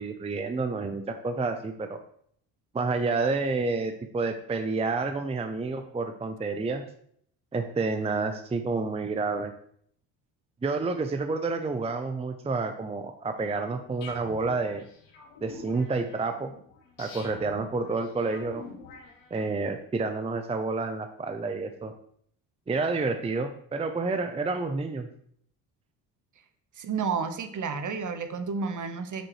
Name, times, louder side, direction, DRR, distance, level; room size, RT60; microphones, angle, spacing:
voice 1, 0.0-2.0 2.7-6.8 7.5-9.5 10.6-14.8 15.4-16.5 17.0-18.6 19.3-21.9 22.7-25.1, right 3 dB, 15° right, 7 dB, 0.6 m, -29 dB
sound 1, 14.0-19.8, left 4 dB, 85° left, 2.0 m, -47 dB
voice 2, 26.8-29.3, right 5 dB, 45° right, 9 dB, 1.1 m, -31 dB
8.5 x 6.2 x 3.1 m, 0.66 s
supercardioid pair, 70°, 43 cm